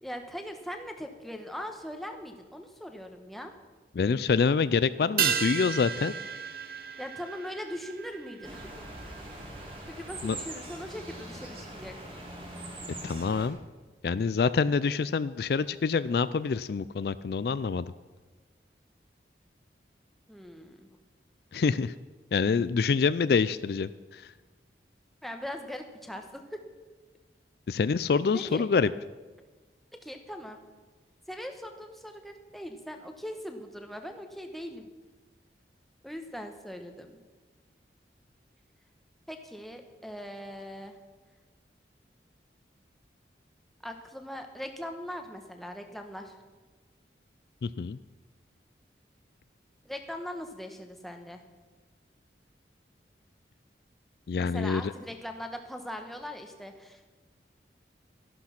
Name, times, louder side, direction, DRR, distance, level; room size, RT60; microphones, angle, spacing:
voice 1, 0.0-3.5 7.0-8.9 9.9-12.0 20.3-20.9 25.2-26.6 28.3-28.7 29.9-30.6 31.3-34.9 36.0-37.2 39.3-41.0 43.8-46.4 49.8-51.4 54.4-57.1, equal, ahead, 4 dB, 1.2 m, -40 dB
voice 2, 3.9-6.1 10.2-10.4 13.0-13.6 14.0-17.9 21.5-21.9 22.3-24.3 27.7-28.9 47.6-48.0 54.3-54.9, left 5 dB, 60° left, 15 dB, 0.3 m, -26 dB
sound 1, 5.2-9.9 10.2-10.3, right 8 dB, 55° right, 0.9 m, -33 dB
sound 2, 8.4-13.5, right 1 dB, 30° right, 2.7 m, -42 dB
13.5 x 11.5 x 5.9 m, 1.3 s
head